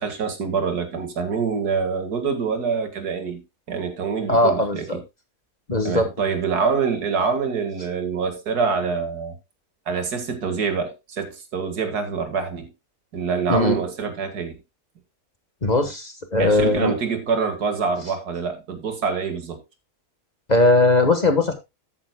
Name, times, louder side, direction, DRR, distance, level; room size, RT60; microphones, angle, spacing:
voice 1, 0.0-3.4 3.7-5.0 5.8-9.3 9.9-12.7 13.1-14.5 16.4-19.6, right 5 dB, 85° right, 2.3 m, -25 dB
voice 2, 4.3-5.0 5.7-6.1 13.5-13.8 15.6-16.9 20.5-21.5, left 2 dB, 30° left, 1.3 m, -19 dB
13.0 x 9.1 x 2.2 m
omnidirectional pair, 1.6 m